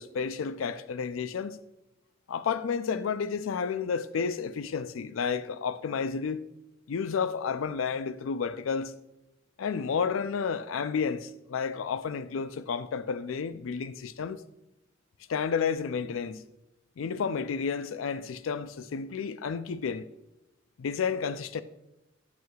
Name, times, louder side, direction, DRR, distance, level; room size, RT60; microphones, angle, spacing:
voice 1, 0.0-1.6 2.3-6.4 6.9-8.9 9.6-14.4 15.3-16.4 17.0-20.1 20.8-21.6, left 6 dB, 85° left, 0.4 m, -31 dB
9.3 x 6.3 x 2.3 m
head